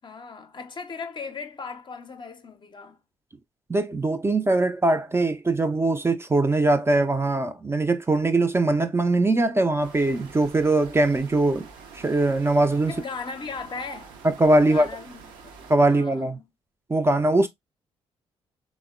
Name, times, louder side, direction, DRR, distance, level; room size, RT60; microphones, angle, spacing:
voice 1, 0.0-3.0 12.9-14.2 14.6-15.5 15.9-16.5, left 4 dB, 35° left, 0.5 m, -37 dB
voice 2, 3.7-11.7 11.9-12.9 14.2-14.9 15.7-16.4 16.9-17.5, right 2 dB, 15° right, 0.4 m, -21 dB
sound 1, 9.8-15.7, right 5 dB, 70° right, 0.6 m, -46 dB
3.4 x 2.0 x 2.3 m
hypercardioid pair, 45°, 14 cm